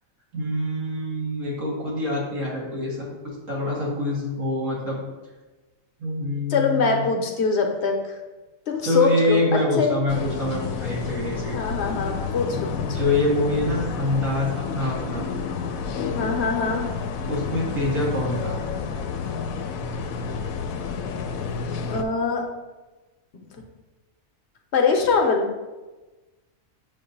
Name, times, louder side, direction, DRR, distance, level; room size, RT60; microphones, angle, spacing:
voice 1, 0.3-5.0 6.0-7.0 8.8-11.6 12.5-15.3 17.3-18.6, left 1 dB, 75° right, -5 dB, 2.2 m, -25 dB
voice 2, 6.5-8.2 8.7-9.9 11.5-13.0 16.1-16.9 21.4-21.6 21.9-22.4 24.7-25.5, left 4 dB, 55° left, 3 dB, 1.0 m, -23 dB
sound 1, 10.1-22.0, left 5 dB, 90° left, 1.0 m, -30 dB
7.1 x 2.7 x 5.3 m, 1.2 s
omnidirectional pair, 1.4 m